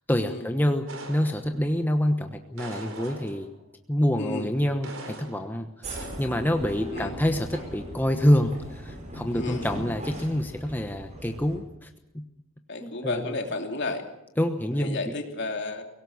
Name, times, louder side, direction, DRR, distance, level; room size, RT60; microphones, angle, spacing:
voice 1, 0.1-3.5 3.9-12.2 12.8-13.4 14.4-15.1, equal, 10° left, 5 dB, 1.1 m, -27 dB
sound 1, 0.9-1.8 2.6-3.6 4.8-5.6 6.0-6.3, right 2 dB, 85° right, 4.2 m, -41 dB
sound 2, 5.8-11.6, right 1 dB, 35° right, 5.7 m, -39 dB
voice 2, 9.3-9.7 12.7-14.0 14.8-15.8, left 2 dB, 60° left, 4 dB, 2.9 m, -32 dB
24.0 x 17.5 x 7.2 m, 0.88 s
head